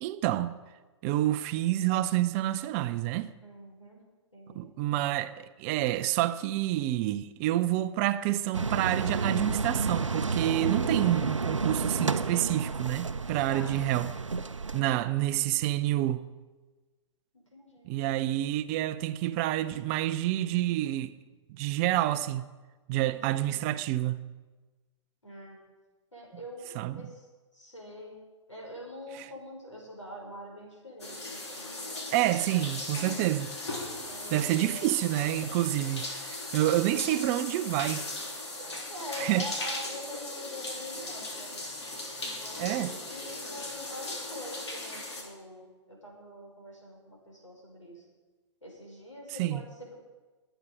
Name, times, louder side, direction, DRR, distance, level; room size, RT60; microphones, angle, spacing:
voice 1, 0.0-0.5 1.0-3.3 4.5-14.2 14.7-16.3 17.9-21.1 21.5-22.5 22.9-24.3 26.7-27.1 29.1-29.3 32.1-33.5 34.3-38.1 39.2-39.5 42.6-42.9 49.3-49.6, right 14 dB, 30° right, 0.5 m, -28 dB
voice 2, 3.4-4.0 4.3-4.7 13.5-13.8 14.7-15.4 17.3-17.9 23.1-23.7 25.2-25.6 26.1-27.2 27.5-28.2 28.5-31.9 32.6-33.4 34.1-34.9 36.9-37.2 38.9-41.7 42.2-48.0 48.6-50.0, equal, 85° left, 5.2 m, -45 dB
sound 1, 8.5-14.8, right 4 dB, 80° right, 0.6 m, -31 dB
sound 2, 31.0-45.2, left 2 dB, 65° left, 3.4 m, -38 dB
21.5 x 9.0 x 5.1 m
figure-of-eight pair, 115°, 16 cm